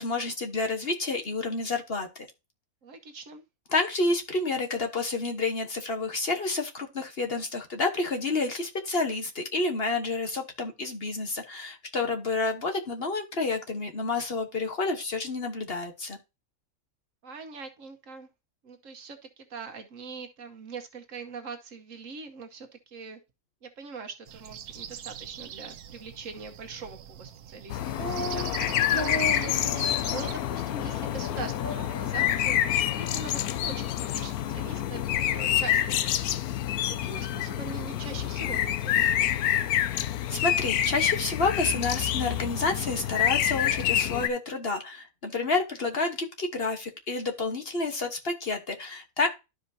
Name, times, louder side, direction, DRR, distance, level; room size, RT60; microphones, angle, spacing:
voice 1, 0.0-2.3 3.7-16.2 40.3-49.3, left 3 dB, 45° left, 4 dB, 1.3 m, -29 dB
voice 2, 2.8-3.4 17.2-18.3 18.6-23.2 23.6-29.2 30.1-36.1 36.9-39.1, right 4 dB, 65° right, 6 dB, 1.4 m, -42 dB
sound 1, 24.3-30.3, right 10 dB, 90° right, 1.2 m, -42 dB
sound 2, 27.7-44.3, left 11 dB, 90° left, 1.1 m, -27 dB
sound 3, 28.0-28.5 28.9-30.1 30.5-30.6 31.0-31.3 31.6-32.4, right 1 dB, 40° right, 1.2 m, -35 dB
12.0 x 5.0 x 2.7 m, 0.26 s
omnidirectional pair, 1.5 m